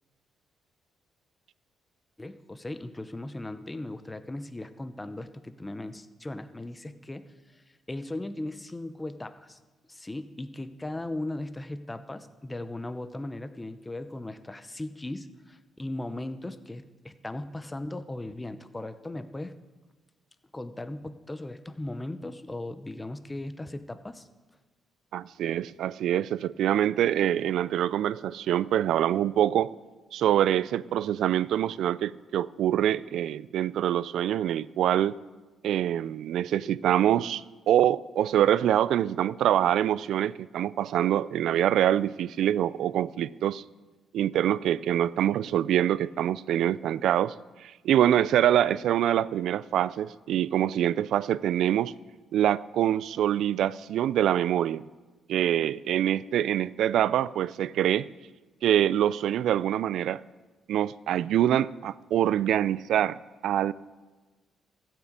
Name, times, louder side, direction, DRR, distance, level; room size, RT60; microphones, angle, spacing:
voice 1, 2.2-9.6 9.9-19.6 20.5-24.3, left 1 dB, 15° left, 11 dB, 0.7 m, -38 dB
voice 2, 25.1-29.7 30.1-35.1 35.6-43.6 44.1-47.3 47.6-51.9 52.3-54.8 55.3-58.1 58.6-60.2 60.7-63.2 63.4-63.7, right 11 dB, 75° right, 19 dB, 0.3 m, -25 dB
14.0 x 6.0 x 8.1 m, 1.2 s
cardioid pair, 90°, 0 cm